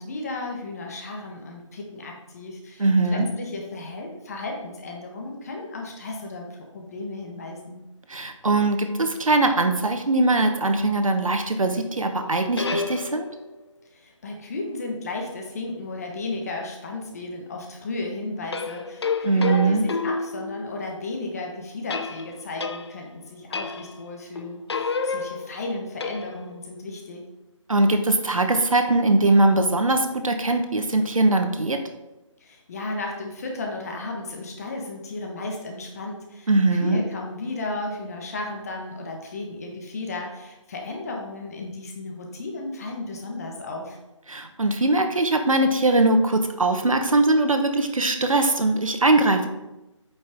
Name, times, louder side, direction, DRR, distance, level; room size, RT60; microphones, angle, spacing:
voice 1, 0.0-7.8 13.9-27.2 32.4-44.0, left 2 dB, 30° left, 1 dB, 1.2 m, -34 dB
voice 2, 2.8-3.3 8.1-13.3 19.2-19.8 27.7-31.8 36.5-37.0 44.3-49.5, right 2 dB, 85° right, 6 dB, 1.1 m, -21 dB
sound 1, 12.2-13.5 18.5-21.0 21.9-23.1 23.5-24.1 24.4-26.6, left 4 dB, 55° left, 0.6 m, -30 dB
8.6 x 5.3 x 3.5 m, 0.98 s
figure-of-eight pair, 160°, 17 cm